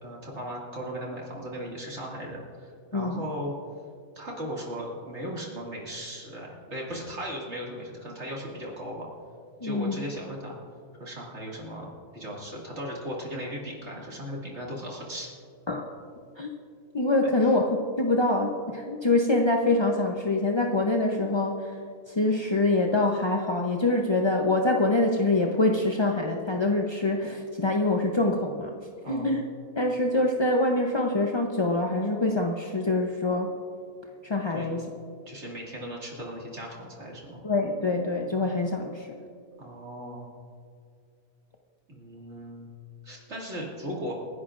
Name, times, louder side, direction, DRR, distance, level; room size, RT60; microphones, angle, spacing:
voice 1, 0.0-3.5 4.2-9.1 9.6-10.6 11.0-15.3 17.4-17.5 29.0-29.3 34.5-34.7 35.3-37.4 39.6-40.3 41.9-42.8 43.0-44.1, equal, 50° right, -3 dB, 2.5 m, -37 dB
voice 2, 9.6-10.0 15.7-15.9 16.4-16.5 16.9-21.7 22.1-28.7 29.1-29.4 29.7-33.5 34.2-34.8 37.4-39.2, left 2 dB, 35° left, 1 dB, 0.4 m, -25 dB
28.0 x 11.0 x 2.5 m, 2.3 s
omnidirectional pair, 1.5 m